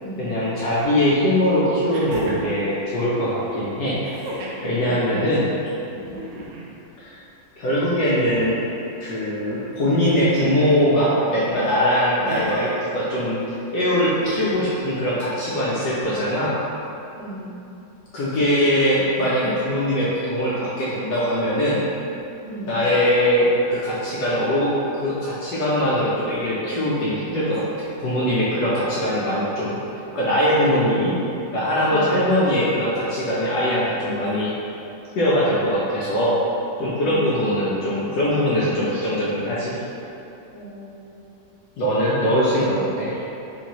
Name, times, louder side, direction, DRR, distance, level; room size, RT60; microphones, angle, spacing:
voice 1, 0.2-4.0 4.6-5.5 7.0-7.2 7.6-8.6 9.0-13.4 13.7-16.6 18.1-21.8 22.7-27.6 28.0-29.8 30.1-31.2 31.5-34.5 35.1-36.4 36.8-39.7 41.8-43.2, equal, 70° left, -8 dB, 1.1 m, -21 dB
sound 1, 0.8-0.9 1.9-2.6 4.0-4.7 6.0-6.7 7.9-8.7 10.1-10.8 12.3-12.8 14.1-14.7 16.0-16.1, right 1 dB, 80° right, 1.3 m, -33 dB
voice 2, 4.8-5.3 5.9-6.2 17.1-17.6 22.4-22.8 31.8-32.2 36.9-37.3 40.5-41.4, right 1 dB, 45° left, -15 dB, 0.9 m, -37 dB
3.7 x 2.6 x 2.8 m, 2.8 s
omnidirectional pair, 2.0 m